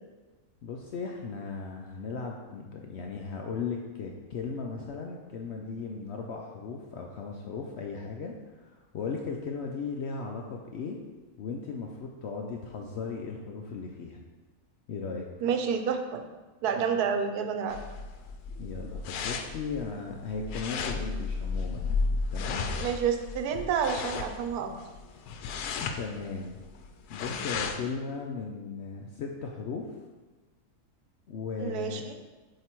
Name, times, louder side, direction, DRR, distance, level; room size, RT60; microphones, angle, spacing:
voice 1, 0.6-8.3 8.6-11.0 11.4-14.2 14.9-15.3 18.6-22.6 26.0-26.6 27.1-30.0 31.3-32.0, left 4 dB, 70° left, 1 dB, 0.6 m, -37 dB
voice 2, 15.4-16.2 16.6-17.8 22.8-24.7 31.6-32.1, right 7 dB, 85° right, 6 dB, 1.1 m, -29 dB
sound 1, 17.7-27.9, left 4 dB, 90° left, 1.1 m, -34 dB
7.7 x 2.9 x 4.4 m, 1.2 s
omnidirectional pair, 1.6 m